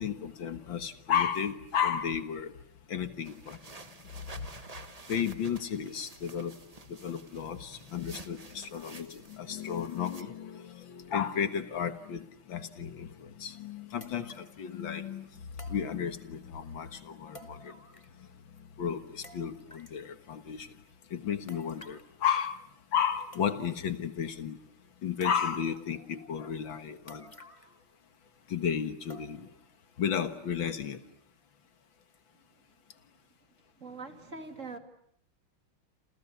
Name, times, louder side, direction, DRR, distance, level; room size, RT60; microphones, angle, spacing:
voice 1, 0.0-2.5 2.9-3.6 5.1-6.5 6.9-15.2 15.7-17.7 18.8-20.7 21.1-22.6 22.9-24.6 25.0-27.3 28.5-29.5 30.0-31.0, left 8 dB, 65° left, 10 dB, 2.2 m, -33 dB
sound 1, 3.2-10.2, right 3 dB, 20° right, 1.3 m, -50 dB
sound 2, 13.2-13.3 14.0-14.6 15.6-16.4 17.4-18.3 18.6-18.7 19.2-20.0 21.5-22.1 22.9-23.0 23.3-23.9 24.2-24.3 25.2-25.8 27.1-27.9 28.1-28.2 29.1-29.6 30.1-30.2 30.8-30.9, equal, 15° left, 1.9 m, -53 dB
voice 2, 33.8-34.8, right 3 dB, 35° right, 6 dB, 2.8 m, -43 dB
29.0 x 28.5 x 7.1 m, 0.67 s
omnidirectional pair, 2.3 m